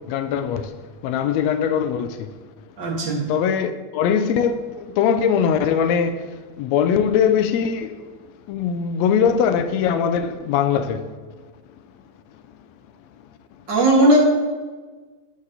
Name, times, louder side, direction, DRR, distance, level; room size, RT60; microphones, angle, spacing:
voice 1, 0.1-0.7 1.0-2.3 3.3-6.3 6.6-8.1 8.5-11.1, left 7 dB, 80° left, 1.5 m, -21 dB
voice 2, 2.8-3.3 13.7-14.2, right 1 dB, 40° right, 2.0 m, -17 dB
12.5 x 4.8 x 6.6 m
omnidirectional pair, 3.8 m